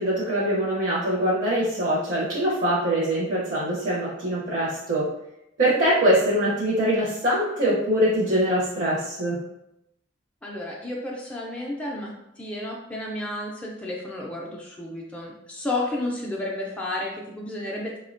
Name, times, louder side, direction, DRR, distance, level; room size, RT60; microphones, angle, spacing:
voice 1, 0.0-5.1 5.6-9.4, right 1 dB, 40° right, -6 dB, 0.6 m, -23 dB
voice 2, 10.4-18.0, left 1 dB, 5° left, -4 dB, 0.3 m, -32 dB
3.5 x 2.1 x 2.5 m, 0.84 s
head